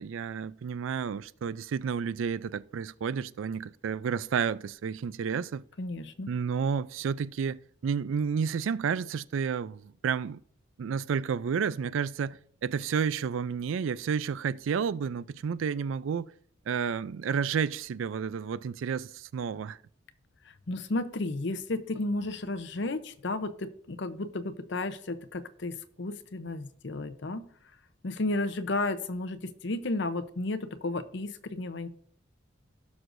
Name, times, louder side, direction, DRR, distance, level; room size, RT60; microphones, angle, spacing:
voice 1, 0.0-5.6 6.3-10.4 10.8-16.3 16.7-19.8, right 6 dB, 75° right, 0.4 m, -31 dB
voice 2, 5.8-6.3 20.4-27.4 28.0-31.9, left 2 dB, 60° left, 0.7 m, -33 dB
17.0 x 6.2 x 2.6 m
head